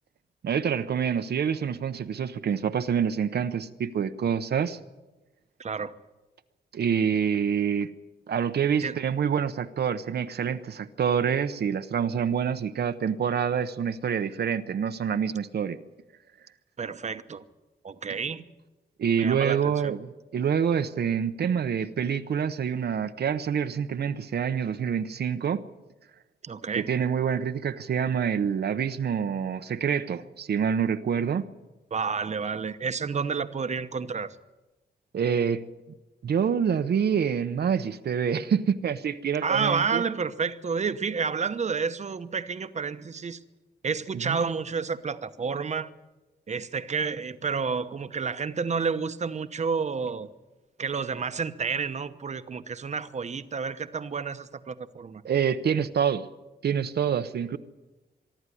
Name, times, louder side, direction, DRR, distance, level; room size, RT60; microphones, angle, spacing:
voice 1, 0.4-4.8 6.7-7.9 8.3-15.8 19.0-25.6 26.7-31.4 35.1-35.6 36.2-40.0 44.1-44.4 55.2-56.3 56.6-57.6, right 7 dB, 70° right, 9 dB, 0.8 m, -26 dB
voice 2, 5.6-5.9 8.8-9.0 16.8-17.4 17.8-18.4 19.2-20.0 26.4-26.9 31.9-34.4 39.4-43.4 43.8-45.9 46.5-50.3 50.8-55.2, right 5 dB, 40° right, 11 dB, 0.9 m, -30 dB
24.0 x 12.5 x 9.8 m, 1.1 s
wide cardioid pair, 160°, 18 cm